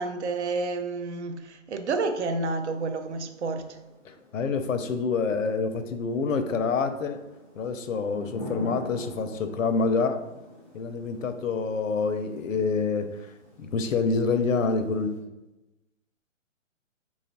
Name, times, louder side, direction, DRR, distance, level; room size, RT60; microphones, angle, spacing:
voice 1, 0.0-3.8, right 3 dB, 65° right, 7 dB, 0.6 m, -30 dB
Thunder / Rain, 2.4-15.2, equal, ahead, 0.4 m, -46 dB
voice 2, 4.0-7.2 7.6-10.2 10.7-13.1 13.6-15.3, left 4 dB, 90° left, 8 dB, 0.6 m, -27 dB
3.0 x 2.4 x 4.0 m, 1.0 s
hypercardioid pair, 150°, 38 cm